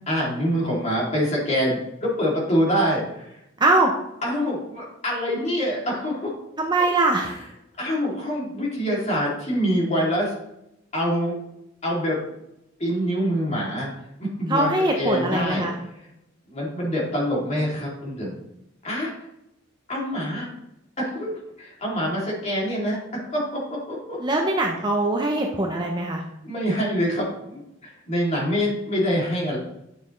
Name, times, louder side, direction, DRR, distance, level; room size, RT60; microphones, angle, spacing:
voice 1, 0.1-3.4 4.2-6.4 7.8-10.3 10.9-11.4 11.8-12.3 12.8-13.9 14.2-14.7 15.0-15.7 16.0-16.1 16.5-18.4 18.8-19.1 19.9-20.5 21.0-24.2 26.4-27.6 28.1-29.6, equal, 35° left, -4 dB, 2.8 m, -25 dB
voice 2, 3.6-3.9 6.6-7.4 14.5-15.7 24.2-26.2, right 2 dB, 20° right, 1 dB, 0.7 m, -22 dB
9.1 x 6.1 x 3.2 m, 0.83 s
head